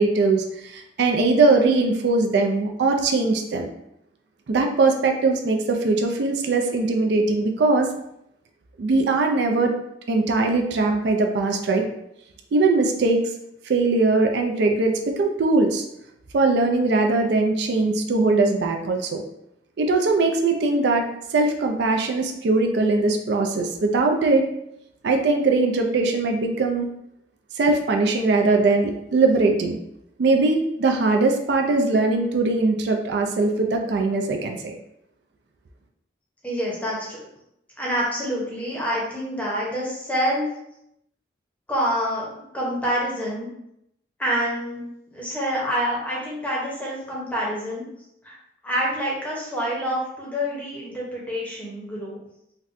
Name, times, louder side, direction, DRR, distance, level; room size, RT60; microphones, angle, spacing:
voice 1, 0.0-3.7 4.5-7.9 8.8-9.7 10.1-11.9 12.5-13.2 13.6-15.9 16.3-19.2 19.8-24.4 25.0-26.9 27.5-29.8 30.2-34.7, right 3 dB, 65° right, 3 dB, 0.3 m, -21 dB
voice 2, 36.4-37.2 37.8-40.5 41.7-43.5 44.2-44.8 45.1-47.8 48.2-48.4 48.6-52.2, equal, 10° left, -5 dB, 0.7 m, -27 dB
3.9 x 2.2 x 2.5 m, 0.79 s
head